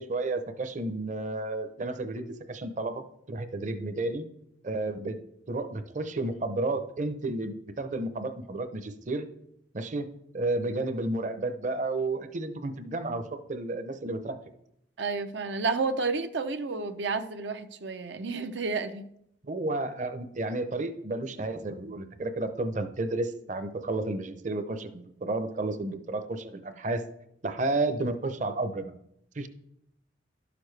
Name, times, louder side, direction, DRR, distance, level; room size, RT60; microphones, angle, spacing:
voice 1, 0.0-4.3 4.6-9.3 9.7-10.1 10.3-14.4 19.4-27.1 27.4-28.9 29.3-29.5, right 2 dB, 45° right, 9 dB, 0.7 m, -32 dB
voice 2, 15.0-19.1, right 4 dB, 80° right, 8 dB, 0.6 m, -31 dB
11.5 x 6.9 x 3.3 m, 0.75 s
head